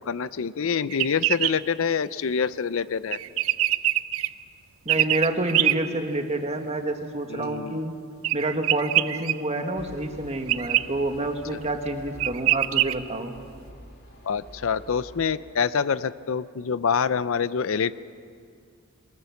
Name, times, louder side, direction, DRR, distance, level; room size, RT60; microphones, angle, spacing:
voice 1, 0.0-3.2 7.3-7.8 14.2-17.9, left 6 dB, 65° left, 16 dB, 0.5 m, -26 dB
sound 1, 0.9-1.5 3.1-4.3 4.9-5.7 8.2-9.3 10.5-10.8 11.8-11.9 12.2-12.9, right 14 dB, 70° right, 0.6 m, -23 dB
voice 2, 4.8-7.9 8.3-13.3, right 1 dB, 30° right, 5 dB, 1.6 m, -28 dB
sound 2, 9.7-15.4, equal, 45° left, 2.9 m, -47 dB
23.0 x 20.5 x 7.1 m, 2.1 s
head